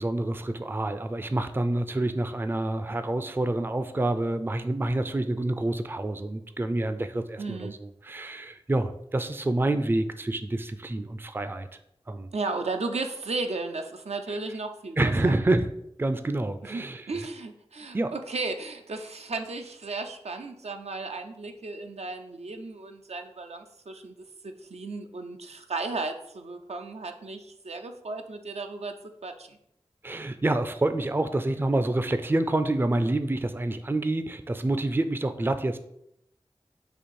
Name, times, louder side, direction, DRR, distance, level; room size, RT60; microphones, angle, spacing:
voice 1, 0.0-11.7 12.1-12.3 15.0-15.7 16.0-17.1 17.9-18.1 30.0-35.8, right 2 dB, 20° right, 10 dB, 0.3 m, -27 dB
voice 2, 7.4-7.7 12.3-15.3 16.7-24.1 24.4-28.9 29.2-29.6, right 3 dB, 85° right, 5 dB, 0.4 m, -35 dB
4.2 x 2.7 x 4.6 m, 0.77 s
wide cardioid pair, 45°, 11 cm